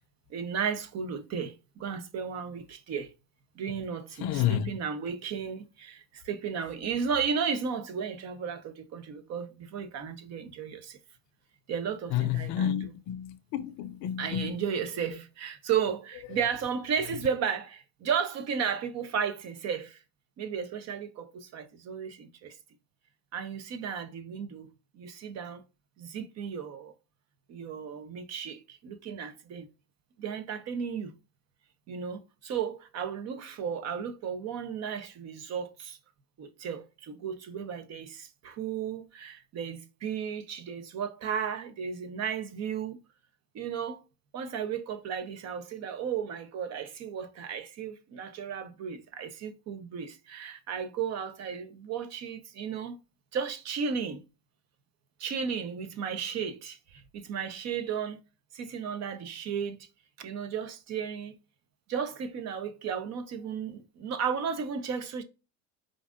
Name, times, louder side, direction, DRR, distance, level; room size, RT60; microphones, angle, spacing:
voice 1, 0.3-3.1 3.6-11.0 11.7-12.9 14.2-20.0 20.4-22.6 23.3-25.6 26.0-26.9 27.5-29.7 30.2-31.1 31.9-36.0 36.4-43.0 43.5-44.0 44.3-53.0 53.3-54.2 55.2-58.2 58.5-59.8 60.2-61.3 61.9-65.2, right 7 dB, 45° right, 0.9 m, -34 dB
voice 2, 4.2-4.7 12.1-14.5, left 11 dB, 50° left, 0.6 m, -30 dB
4.9 x 2.6 x 3.6 m
supercardioid pair, 105°, 36 cm